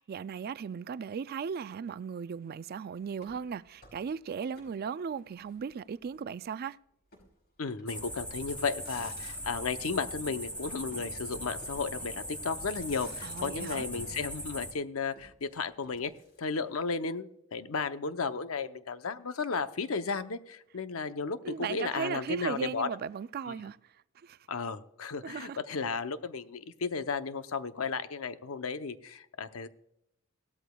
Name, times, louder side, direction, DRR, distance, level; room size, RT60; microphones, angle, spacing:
voice 1, 0.0-6.8 13.2-13.9 21.4-23.8 24.2-24.4 25.2-25.6, right 6 dB, 45° right, 0.3 m, -37 dB
Motor vehicle (road), 3.2-4.8 5.1-6.1 7.1-7.3 7.8-8.2 8.7-9.7 10.9-12.0 12.5-12.6 12.8-14.3 15.1-16.8, left 2 dB, 55° left, 5.1 m, -55 dB
voice 2, 7.6-16.1 16.4-22.9 23.5-23.6 24.5-29.7, left 4 dB, 80° left, 0.7 m, -34 dB
sound 1, 7.9-14.7, equal, 10° left, 1.8 m, -40 dB
17.0 x 13.0 x 2.3 m
head